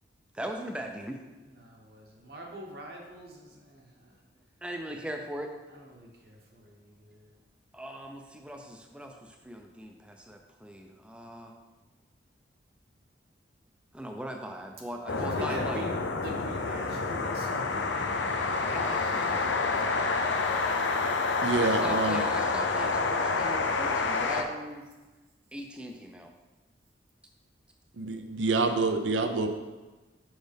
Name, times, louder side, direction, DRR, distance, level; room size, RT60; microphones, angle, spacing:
voice 1, 0.3-1.2 4.6-5.5 7.7-11.5 13.9-15.8 18.7-19.5 21.6-24.9 25.5-26.3, right 1 dB, 5° right, 3 dB, 0.4 m, -39 dB
voice 2, 1.4-4.2 4.9-5.0 5.7-7.3 15.1-18.2, right 1 dB, 55° right, -1 dB, 1.2 m, -44 dB
sound 1, 15.1-24.4, left 4 dB, 80° left, 0.5 m, -28 dB
voice 3, 21.4-22.2 28.0-29.5, right 3 dB, 85° right, 6 dB, 0.6 m, -27 dB
6.2 x 5.2 x 3.4 m, 1.2 s
head